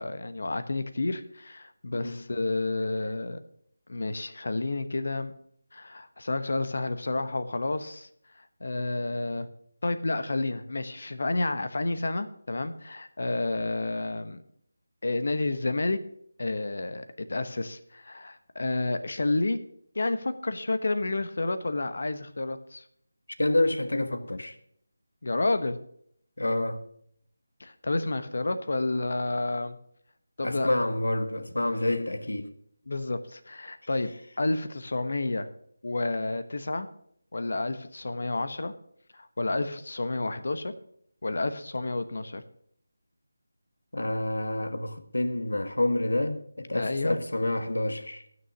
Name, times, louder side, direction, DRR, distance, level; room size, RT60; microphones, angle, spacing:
voice 1, 0.0-3.4 3.9-5.3 5.7-8.1 8.3-9.5 9.8-14.4 15.0-16.0 16.4-19.6 19.9-22.8 25.2-25.8 27.6-29.8 30.4-30.7 32.9-34.1 34.4-35.5 35.8-36.9 37.3-38.7 39.1-40.7 41.2-42.4 46.7-47.2, left 2 dB, 65° left, 1.0 m, -30 dB
voice 2, 1.9-2.3 23.4-24.5 26.4-26.8 30.4-32.5 43.9-48.2, left 1 dB, 90° left, 1.3 m, -28 dB
12.5 x 6.3 x 6.2 m
figure-of-eight pair, 170°, 0 cm